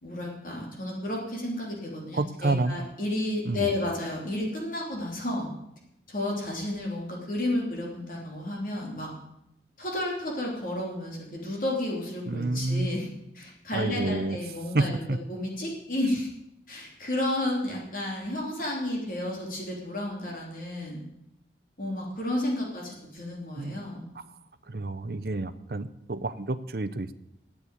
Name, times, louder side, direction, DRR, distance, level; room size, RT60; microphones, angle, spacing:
voice 1, 0.0-5.5 6.1-9.1 9.8-16.3 16.7-21.0 21.8-24.0, left 1 dB, 50° left, -2 dB, 3.2 m, -32 dB
voice 2, 2.1-2.8 3.4-3.7 12.3-12.9 13.7-14.4 14.7-15.2 23.6-23.8 24.7-27.1, right 2 dB, 60° right, 12 dB, 0.7 m, -29 dB
9.9 x 8.6 x 9.4 m, 0.82 s
head